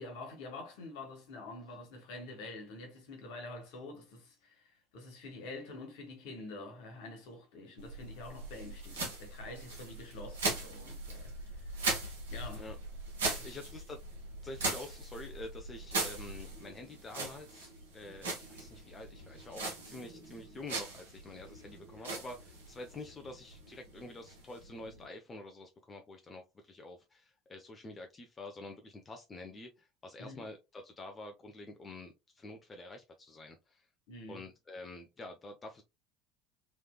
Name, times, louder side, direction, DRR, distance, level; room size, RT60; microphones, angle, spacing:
voice 1, 0.0-11.8 12.3-12.6 13.2-13.6 30.2-30.5 34.1-34.5, left 2 dB, 60° left, 1.3 m, -47 dB
sound 1, 7.8-25.1, right 2 dB, 80° right, 1.3 m, -40 dB
voice 2, 13.4-14.0 14.4-33.9 34.3-35.8, left 2 dB, 25° left, 0.6 m, -48 dB
3.3 x 3.2 x 2.2 m
figure-of-eight pair, 65°, 0 cm